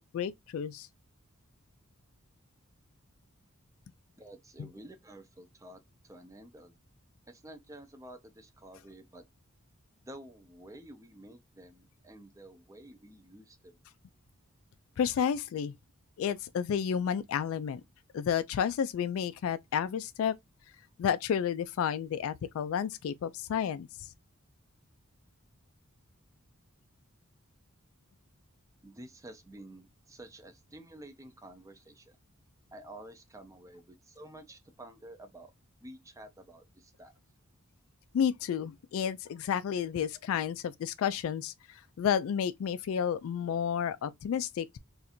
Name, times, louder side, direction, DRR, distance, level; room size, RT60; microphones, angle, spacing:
voice 1, 0.1-0.9 15.0-15.8 16.2-17.8 18.1-20.4 21.0-24.1 38.1-44.8, left 8 dB, 70° left, 0.3 m, -31 dB
voice 2, 4.2-6.8 7.3-9.2 10.1-13.8 28.8-32.1 32.7-35.5 35.8-37.1, right 1 dB, 15° right, 0.5 m, -50 dB
2.6 x 2.4 x 4.2 m
head